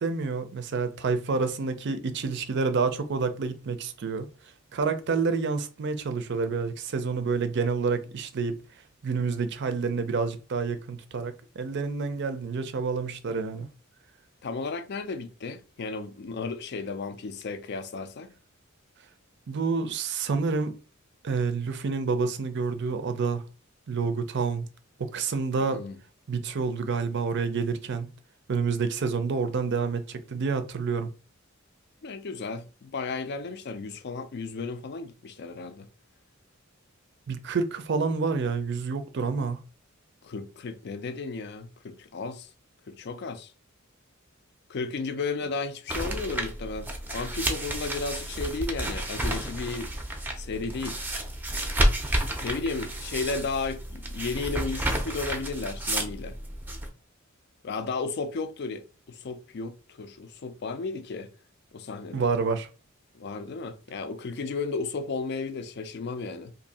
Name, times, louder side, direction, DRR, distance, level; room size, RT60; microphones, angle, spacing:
voice 1, 0.0-4.3 4.7-8.6 9.0-13.7 19.5-20.7 21.2-23.4 23.9-24.6 25.0-25.8 26.3-28.1 28.5-31.1 37.3-39.6 62.1-62.7, right 4 dB, 55° right, 0.5 m, -28 dB
voice 2, 14.4-18.3 25.7-25.9 32.0-35.9 40.2-42.5 42.9-43.5 44.7-49.9 50.4-51.0 52.4-56.4 57.6-61.3 61.7-62.3 63.1-66.5, left 4 dB, 55° left, 0.4 m, -34 dB
sound 1, 45.9-56.9, right 1 dB, 10° right, 0.5 m, -31 dB
2.7 x 2.6 x 4.0 m
head